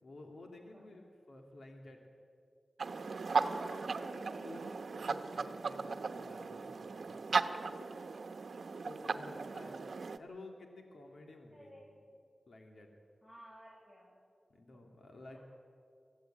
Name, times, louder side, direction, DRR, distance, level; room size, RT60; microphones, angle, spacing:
voice 1, 0.0-2.0 4.0-4.1 4.4-4.7 4.9-7.4 7.7-7.9 8.4-9.8 10.2-12.0 12.5-12.9 14.5-15.4, left 2 dB, 75° left, 2 dB, 2.5 m, -53 dB
sound 1, 2.8-10.2, right 4 dB, 75° right, 1.0 m, -37 dB
voice 2, 3.3-4.8 9.6-9.8 11.5-11.9 13.2-14.2 14.7-14.8 15.3-15.4, equal, 20° left, -6 dB, 7.3 m, -53 dB
24.0 x 15.5 x 9.2 m, 2.4 s
wide cardioid pair, 65°, 0 cm